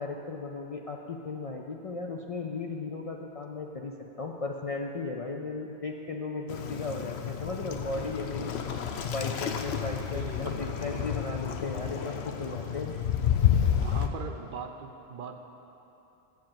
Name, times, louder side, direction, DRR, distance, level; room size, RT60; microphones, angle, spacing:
voice 1, 0.0-8.6 9.0-13.0, left 3 dB, 50° left, 1 dB, 0.4 m, -36 dB
Waves surf, 6.5-14.1, left 9 dB, 80° left, 0.9 m, -30 dB
voice 2, 10.1-10.6 13.8-15.4, right 5 dB, 60° right, 5 dB, 0.7 m, -40 dB
7.6 x 7.3 x 7.5 m, 2.9 s
omnidirectional pair, 1.1 m